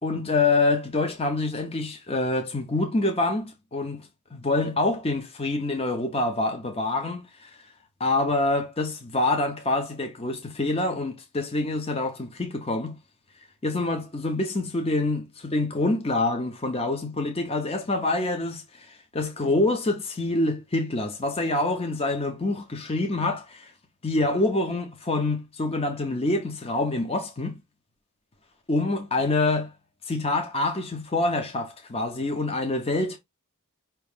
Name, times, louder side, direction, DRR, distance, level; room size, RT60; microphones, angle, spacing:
voice 1, 0.0-7.6 8.0-13.0 13.6-23.7 24.0-27.6 28.7-29.7 30.1-33.2, left 2 dB, 25° left, 0.7 m, -26 dB
5.1 x 3.0 x 3.4 m
head